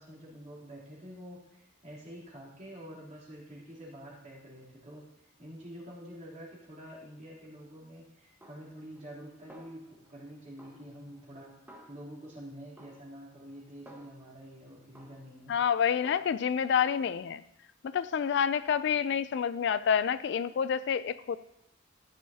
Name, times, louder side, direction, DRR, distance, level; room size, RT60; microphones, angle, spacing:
voice 1, 0.0-11.6 11.9-15.5, equal, 35° right, -5 dB, 3.2 m, -47 dB
Snare drum, 8.4-9.2 9.5-10.3 10.6-12.4 12.8-14.4 14.9-16.5 16.9-17.1, right 1 dB, 10° right, 1.5 m, -56 dB
voice 2, 15.5-17.4 17.9-21.4, left 7 dB, 60° left, 15 dB, 0.3 m, -28 dB
14.0 x 10.5 x 2.8 m, 0.79 s
head